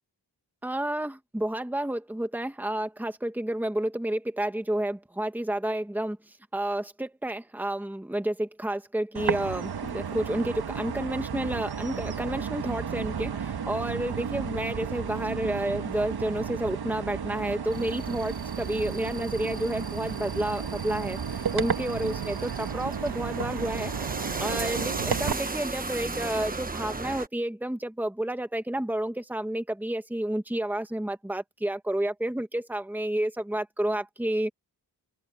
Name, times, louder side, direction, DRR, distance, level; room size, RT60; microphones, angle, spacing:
voice 1, 0.6-34.5, right 1 dB, 5° right, 1.6 m, -30 dB
sound 1, 9.1-25.3, right 7 dB, 65° right, 1.5 m, -33 dB
sound 2, 17.7-27.3, right 3 dB, 20° right, 1.2 m, -36 dB
open air
wide cardioid pair, 120°, 41 cm